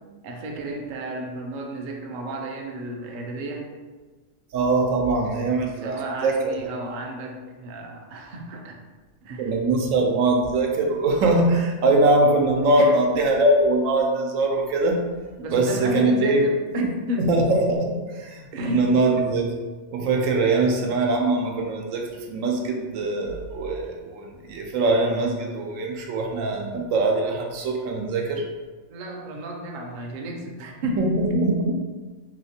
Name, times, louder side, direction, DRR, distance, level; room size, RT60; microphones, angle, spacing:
voice 1, 0.2-3.7 5.8-8.8 9.2-9.5 12.8-12.9 15.4-17.3 18.5-19.0 28.9-31.1, right 1 dB, 65° right, 1 dB, 0.5 m, -32 dB
voice 2, 4.5-6.5 9.4-15.0 15.5-16.4 16.8-16.9 17.2-19.5 19.9-28.5 31.0-31.8, right 2 dB, 90° right, 1 dB, 1.0 m, -22 dB
3.2 x 2.8 x 2.7 m, 1.3 s
omnidirectional pair, 1.3 m